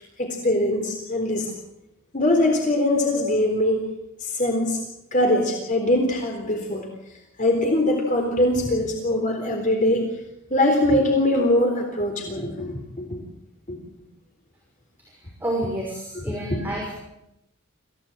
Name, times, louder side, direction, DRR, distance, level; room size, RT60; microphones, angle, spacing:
voice 1, 0.2-1.5 2.1-3.8 4.2-4.8 5.1-6.9 7.4-10.0 10.5-13.2 13.7-13.8, left 1 dB, 40° left, 2 dB, 3.9 m, -22 dB
voice 2, 15.1-16.9, right 1 dB, 10° right, -3 dB, 6.1 m, -30 dB
27.0 x 17.0 x 8.9 m, 0.86 s
head